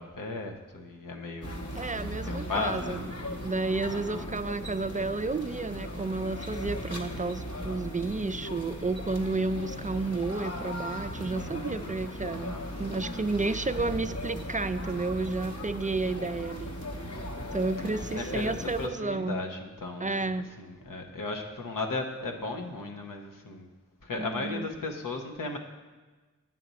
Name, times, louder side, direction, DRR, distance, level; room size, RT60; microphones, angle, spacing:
voice 1, 0.0-1.6 2.2-3.0 3.9-4.3 11.4-11.8 12.3-12.6 13.7-14.0 16.0-16.5 17.8-20.2 20.6-23.7 24.0-25.6, left 3 dB, 90° left, 2 dB, 1.0 m, -36 dB
sound 1, 1.4-18.9, equal, 50° left, 1.1 m, -38 dB
voice 2, 1.7-3.1 3.4-16.7 17.5-19.4 20.0-20.5 24.2-24.7, right 3 dB, 25° right, 11 dB, 0.4 m, -31 dB
9.1 x 7.5 x 4.1 m, 1.3 s
cardioid pair, 45°, 32 cm